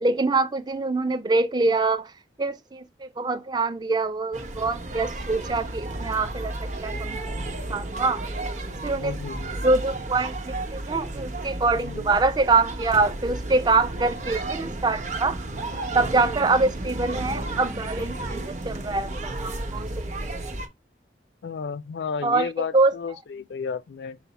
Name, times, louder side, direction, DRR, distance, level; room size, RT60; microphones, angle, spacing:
voice 1, 0.0-2.1 2.4-7.2 7.7-8.2 8.8-9.2 9.6-15.4 15.9-20.4 22.2-22.9, right 3 dB, 25° right, 0.4 m, -24 dB
sound 1, 4.3-20.7, right 2 dB, 40° right, 0.7 m, -33 dB
voice 2, 9.0-9.6 11.7-12.2 21.4-24.2, left 5 dB, 75° left, 0.4 m, -33 dB
5.7 x 2.1 x 4.0 m
head